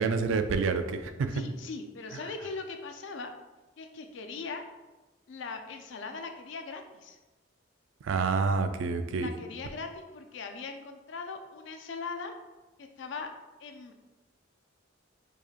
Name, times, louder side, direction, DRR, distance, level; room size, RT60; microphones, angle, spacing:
voice 1, 0.0-1.4 8.0-9.3, right 4 dB, 80° right, 9 dB, 0.3 m, -28 dB
voice 2, 1.3-3.3 3.8-4.6 5.3-7.2 9.1-12.3 12.8-13.3 13.6-14.0, left 4 dB, 65° left, 5 dB, 0.4 m, -40 dB
4.6 x 2.8 x 2.4 m, 1.2 s
head